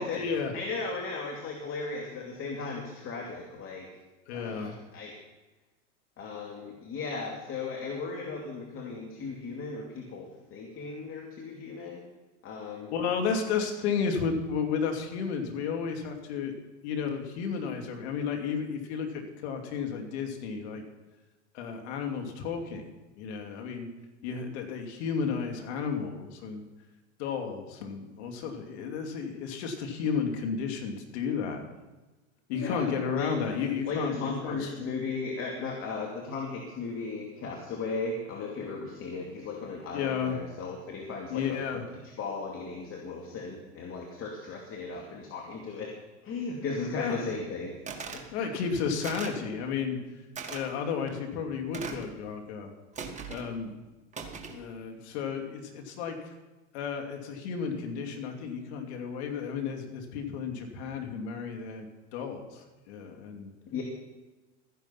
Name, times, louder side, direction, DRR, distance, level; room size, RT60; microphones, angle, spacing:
voice 1, 0.0-0.5 4.3-4.8 12.9-16.5 16.8-20.8 21.5-22.9 23.2-23.9 24.2-26.6 27.2-31.6 32.5-34.9 39.9-40.4 41.3-41.8 46.9-47.4 48.3-50.0 50.5-52.7 53.3-53.7 54.4-56.2 56.7-63.5, left 6 dB, 65° left, 4 dB, 2.7 m, -33 dB
voice 2, 0.5-3.9 4.3-5.1 6.2-12.0 12.4-12.9 32.5-41.8 42.2-45.9 46.2-47.8 48.1-48.6 63.7-63.8, left 4 dB, 35° left, 0 dB, 2.5 m, -36 dB
sound 1, 47.9-48.3 49.0-49.4 50.4-50.6 51.7-52.1 53.0-53.5 54.1-54.6, right 5 dB, 20° right, 1.8 m, -39 dB
14.0 x 10.5 x 5.8 m, 1.1 s
hypercardioid pair, 105°, 36 cm